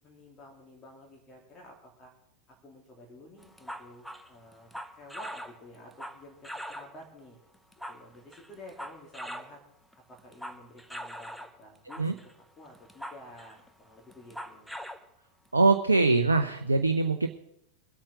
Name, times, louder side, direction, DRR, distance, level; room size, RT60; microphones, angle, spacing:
voice 1, 0.0-2.1 2.5-6.4 6.7-7.4 7.9-9.6 10.1-12.1 12.6-14.7, left 1 dB, 25° left, -1 dB, 3.0 m, -51 dB
sound 1, 3.4-7.0 7.5-9.6 9.9-11.6 11.9-12.3 12.7-13.7 14.1-15.1, equal, ahead, 0.7 m, -42 dB
voice 2, 15.5-17.3, right 3 dB, 80° right, 7 dB, 0.6 m, -23 dB
23.0 x 8.7 x 3.7 m, 0.78 s
figure-of-eight pair, 90°, 0 cm